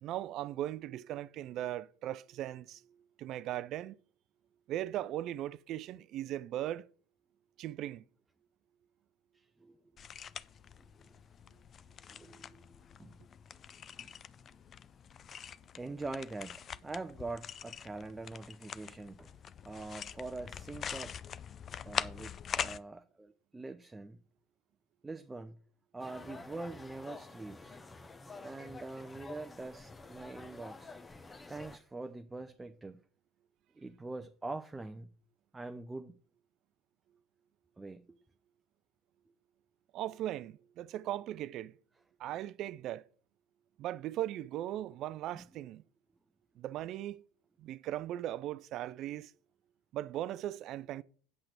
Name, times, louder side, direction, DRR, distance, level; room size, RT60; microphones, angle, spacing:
voice 1, 0.0-2.8 3.2-4.0 4.7-6.8 7.6-8.1 39.9-41.7 42.2-43.1 43.8-45.8 46.6-47.2 47.6-49.3 49.9-51.0, right 13 dB, 50° right, 0.5 m, -38 dB
voice 2, 9.3-9.8 10.8-10.9 12.1-12.6 13.0-13.2 14.0-14.1 14.4-14.6 15.7-19.3 19.6-21.2 21.8-24.2 25.0-25.6 25.9-27.8 28.4-30.9 31.5-33.0 33.7-35.1 35.5-36.2 37.8-38.2 45.3-45.4, right 3 dB, 15° right, 0.7 m, -44 dB
sound 1, 10.0-22.8, left 8 dB, 40° left, 0.4 m, -43 dB
sound 2, 26.0-31.8, left 3 dB, 20° left, 0.9 m, -49 dB
8.8 x 5.9 x 6.5 m
hypercardioid pair, 75°, 0 cm